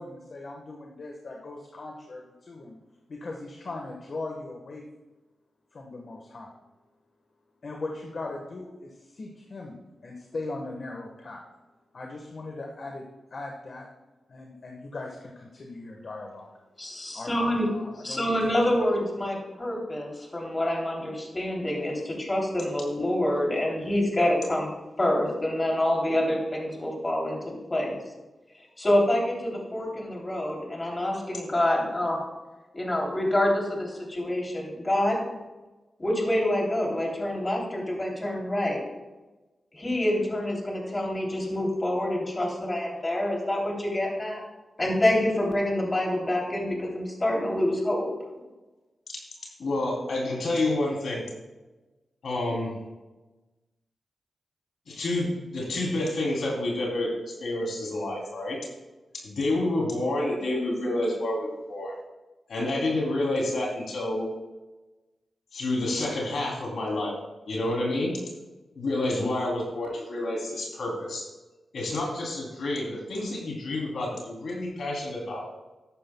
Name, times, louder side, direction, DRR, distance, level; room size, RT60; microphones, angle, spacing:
voice 1, 0.0-2.8 3.1-4.8 5.7-6.5 7.6-9.8 10.0-11.4 11.9-13.9 14.3-16.5 17.1-18.9, left 2 dB, 55° left, 0 dB, 1.4 m, -39 dB
voice 2, 16.8-17.7 18.0-24.7 25.0-27.4 27.7-28.0 28.8-32.3 32.7-35.2 36.0-38.8 39.7-44.4 44.8-48.1, left 1 dB, 30° left, -1 dB, 3.2 m, -27 dB
voice 3, 49.6-51.3 52.2-52.7 54.9-58.6 59.2-61.9 62.5-64.3 65.5-67.2 67.4-68.2 68.7-71.3 71.7-75.5, left 1 dB, 75° left, -2 dB, 3.3 m, -29 dB
14.0 x 10.5 x 2.3 m, 1.1 s
cardioid pair, 75°, 0 cm